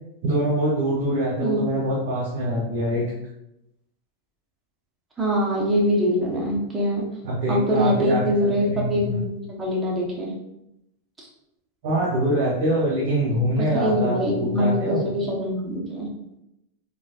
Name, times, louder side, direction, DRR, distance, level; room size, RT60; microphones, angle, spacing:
voice 1, 0.2-3.0 7.2-9.2 11.8-15.1, right 1 dB, 60° right, -3 dB, 0.9 m, -24 dB
voice 2, 1.4-1.7 5.2-7.1 7.5-10.3 11.2-11.3 13.6-16.1, equal, 15° right, -4 dB, 1.1 m, -23 dB
3.9 x 2.7 x 2.4 m, 0.85 s
hypercardioid pair, 115°, 0 cm